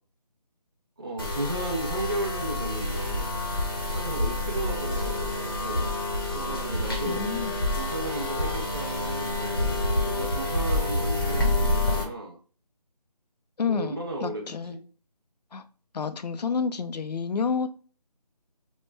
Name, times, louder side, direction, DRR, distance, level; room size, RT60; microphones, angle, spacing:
voice 1, 1.0-3.4 3.9-5.9 6.3-7.5 7.7-12.4 13.7-14.8, right 2 dB, 35° right, 0 dB, 0.5 m, -35 dB
sound 1, 1.2-12.0, left 1 dB, 35° left, 0.8 m, -28 dB
voice 2, 7.1-7.6 13.6-14.8 15.5-15.6 15.9-17.7, left 5 dB, 75° left, 10 dB, 0.5 m, -29 dB
3.0 x 2.1 x 3.2 m, 0.40 s
figure-of-eight pair, 180°, 21 cm